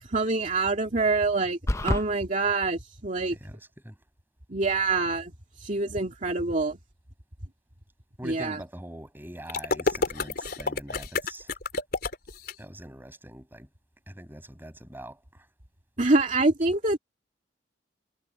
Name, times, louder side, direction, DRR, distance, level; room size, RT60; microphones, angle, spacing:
voice 1, 0.1-3.4 4.5-5.3 5.6-6.8 8.2-8.6 16.0-17.0, right 3 dB, 40° right, 2.5 m, -25 dB
sound 1, 1.7-2.1, left 1 dB, 15° left, 0.5 m, -25 dB
voice 2, 3.3-4.0 8.2-11.5 12.6-13.7 14.1-15.5, right 1 dB, 10° right, 7.1 m, -43 dB
sound 2, 9.5-12.5, left 3 dB, 55° left, 4.4 m, -29 dB
head